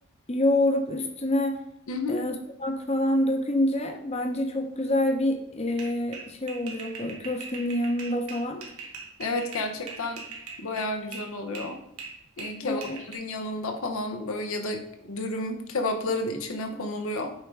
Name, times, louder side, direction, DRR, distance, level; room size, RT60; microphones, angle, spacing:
voice 1, 0.3-1.6 2.1-8.6 12.6-13.0, left 1 dB, 30° left, 5 dB, 0.9 m, -27 dB
voice 2, 1.9-2.2 9.2-10.2 10.6-11.8 12.4-14.8 15.1-17.3, left 2 dB, 70° left, 5 dB, 0.9 m, -31 dB
sound 1, 5.8-11.3 11.6-13.2, right 4 dB, 85° right, 1.5 m, -41 dB
8.5 x 3.7 x 4.7 m, 0.82 s
head